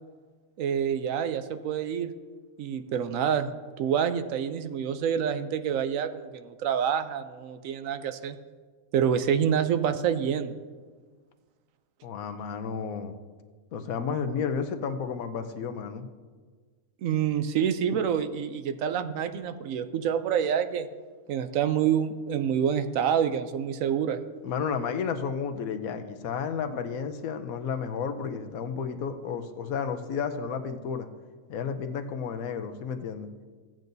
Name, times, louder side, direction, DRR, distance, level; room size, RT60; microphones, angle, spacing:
voice 1, 0.6-2.1 2.6-3.5 3.8-8.4 8.9-10.5 17.0-20.9 21.3-24.2, right 8 dB, 70° right, 10 dB, 0.9 m, -27 dB
voice 2, 12.0-13.2 13.7-16.1 24.4-31.1 31.5-33.3, left 6 dB, 75° left, 7 dB, 1.1 m, -32 dB
15.0 x 9.1 x 2.6 m, 1.5 s
omnidirectional pair, 1.5 m